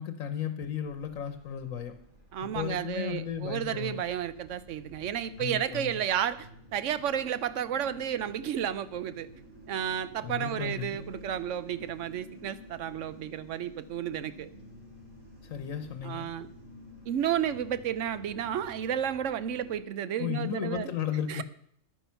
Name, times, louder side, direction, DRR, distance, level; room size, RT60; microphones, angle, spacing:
voice 1, 0.0-2.0 2.5-4.0 5.4-6.0 10.2-11.0 15.4-16.2 20.2-21.4, left 9 dB, 85° left, 8 dB, 1.3 m, -34 dB
sound 1, 0.8-19.8, equal, 40° right, 3.2 m, -51 dB
voice 2, 2.3-9.3 9.7-14.5 16.0-16.5 17.1-20.9 21.3-21.4, right 9 dB, 70° right, 14 dB, 1.0 m, -32 dB
11.0 x 9.4 x 5.7 m, 0.68 s
omnidirectional pair, 1.4 m